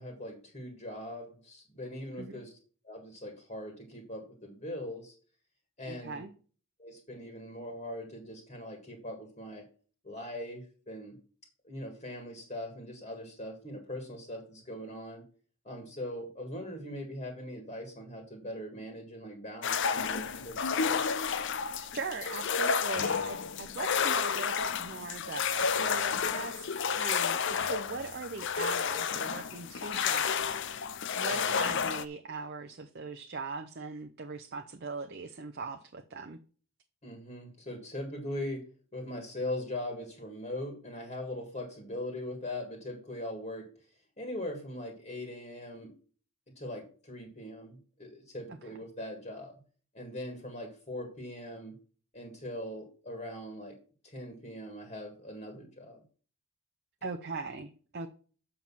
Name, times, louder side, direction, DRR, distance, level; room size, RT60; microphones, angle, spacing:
voice 1, 0.0-2.5 2.8-5.1 5.8-6.2 6.8-9.6 10.0-11.2 11.6-15.2 15.7-21.0 31.3-31.6 37.0-38.6 38.9-43.6 44.2-45.9 46.6-49.5 49.9-51.8 52.1-53.8 54.0-56.0, left 1 dB, 30° left, 3 dB, 1.8 m, -41 dB
voice 2, 5.8-6.3 21.8-26.6 27.0-36.4 57.0-58.1, right 4 dB, 45° right, 6 dB, 0.6 m, -40 dB
sound 1, 19.6-32.0, left 6 dB, 55° left, 0.5 m, -31 dB
7.4 x 5.6 x 5.9 m, 0.40 s
head